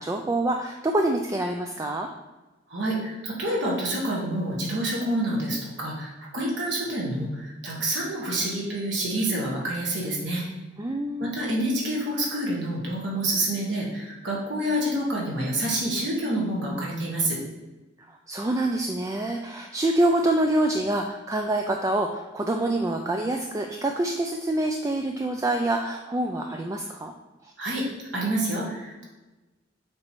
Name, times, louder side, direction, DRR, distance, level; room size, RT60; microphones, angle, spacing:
voice 1, 0.0-2.1 10.8-11.3 18.1-27.1 27.4-27.5, right 1 dB, 15° right, 3 dB, 0.3 m, -26 dB
voice 2, 2.7-10.4 11.2-17.4 27.6-27.8 28.1-29.0, right 1 dB, 70° right, -4 dB, 1.7 m, -28 dB
7.5 x 3.1 x 4.5 m, 1.1 s
head